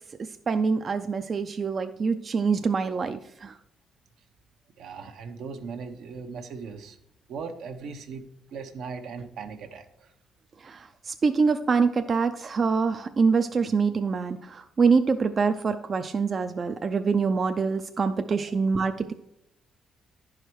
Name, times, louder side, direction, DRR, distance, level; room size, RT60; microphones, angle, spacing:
voice 1, 0.5-3.5 10.6-19.1, right 5 dB, 40° right, 7 dB, 0.5 m, -25 dB
voice 2, 4.8-7.0 7.3-8.2 8.5-9.9 18.3-18.6, right 5 dB, 80° right, 5 dB, 0.9 m, -38 dB
11.0 x 4.9 x 4.6 m, 0.84 s
cardioid pair, 90°, 0 cm